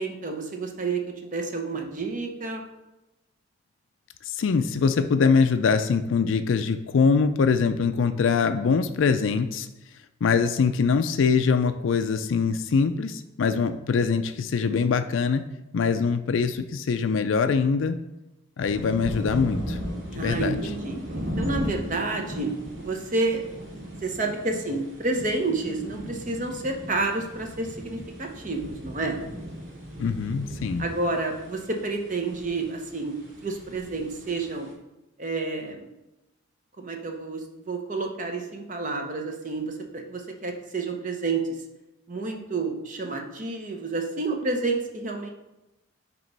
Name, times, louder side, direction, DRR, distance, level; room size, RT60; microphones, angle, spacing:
voice 1, 0.0-2.6 13.6-13.7 20.1-21.0 21.4-23.6 24.0-29.2 30.8-33.1 33.4-34.7 35.2-35.9 36.8-41.4 42.1-45.3, right 3 dB, 40° right, 3 dB, 0.8 m, -30 dB
voice 2, 4.3-9.7 10.2-15.4 15.7-18.0 18.6-19.8 20.1-20.6 30.0-30.8, left 5 dB, 75° left, 9 dB, 0.4 m, -23 dB
sound 1, 18.6-34.7, equal, 75° right, 1.8 m, -37 dB
8.9 x 3.0 x 5.3 m, 0.97 s
head